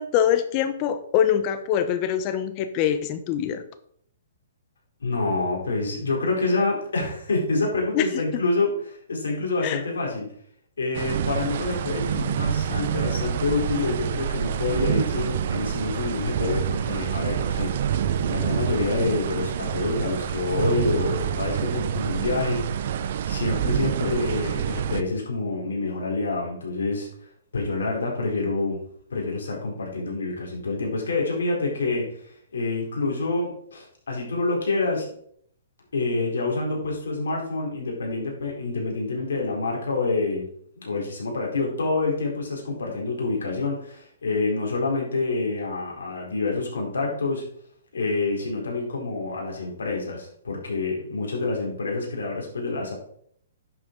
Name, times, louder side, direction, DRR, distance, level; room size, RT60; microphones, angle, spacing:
voice 1, 0.0-3.6 7.9-8.0 9.6-9.8, left 9 dB, 35° left, 10 dB, 1.0 m, -24 dB
voice 2, 5.0-10.3 10.8-22.6 23.3-27.1 27.5-28.8 29.1-32.1 32.5-35.1 35.9-40.5 40.8-47.4 47.9-52.9, left 3 dB, 80° left, -1 dB, 4.0 m, -27 dB
sound 1, 10.9-25.0, right 9 dB, 55° right, 0.8 m, -27 dB
10.5 x 7.0 x 3.9 m, 0.65 s
hypercardioid pair, 130°, 0 cm